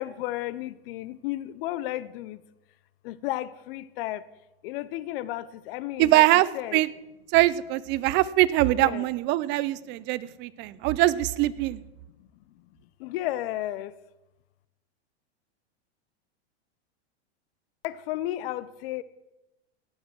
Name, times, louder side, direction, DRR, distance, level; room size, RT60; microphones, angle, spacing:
voice 1, 0.0-2.4 3.0-4.2 4.6-6.2 6.5-6.8 8.8-9.0 13.0-13.9 17.8-19.0, left 15 dB, 60° left, 17 dB, 0.7 m, -33 dB
voice 2, 6.0-6.5 6.7-6.9 7.3-11.8, right 16 dB, 35° right, 18 dB, 0.4 m, -22 dB
17.0 x 5.8 x 6.1 m, 0.99 s
supercardioid pair, 130°, 33 cm